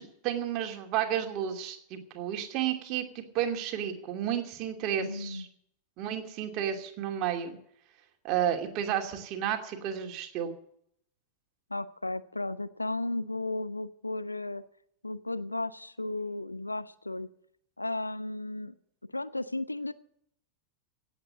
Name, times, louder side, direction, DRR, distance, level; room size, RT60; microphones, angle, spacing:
voice 1, 0.0-5.5 6.0-7.6 8.2-10.5, right 10 dB, 40° right, 4 dB, 2.6 m, -32 dB
voice 2, 5.0-5.5 11.7-14.6 15.0-17.3 17.8-18.7 19.1-19.9, left 2 dB, 85° left, 14 dB, 0.8 m, -34 dB
17.0 x 8.3 x 8.4 m, 0.68 s
figure-of-eight pair, 90°, 0 cm